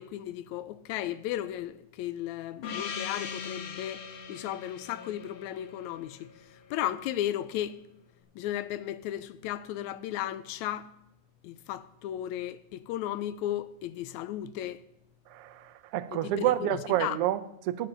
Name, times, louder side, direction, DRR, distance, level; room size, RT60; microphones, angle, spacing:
voice 1, 0.0-6.3 6.7-7.8 8.4-10.9 11.4-14.8 16.1-17.2, left 12 dB, 80° left, 1.8 m, -35 dB
Gong, 2.6-7.0, left 6 dB, 55° left, 1.6 m, -40 dB
voice 2, 15.3-17.9, right 13 dB, 90° right, 1.3 m, -29 dB
12.0 x 9.6 x 5.4 m
omnidirectional pair, 3.5 m